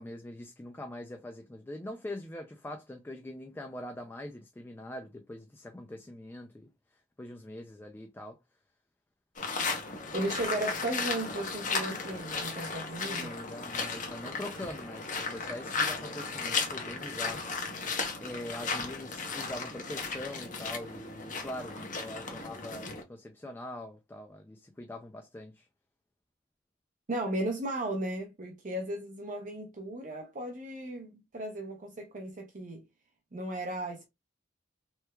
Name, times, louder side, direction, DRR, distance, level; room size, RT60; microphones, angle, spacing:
voice 1, 0.0-6.7 7.2-8.4 13.0-18.0 18.2-25.7, left 1 dB, 10° left, 0.3 m, -43 dB
sound 1, 9.4-23.0, left 4 dB, 45° left, 0.8 m, -35 dB
voice 2, 10.1-13.3 27.1-32.8 33.3-34.1, right 1 dB, 45° right, 0.6 m, -35 dB
3.3 x 3.0 x 2.2 m
head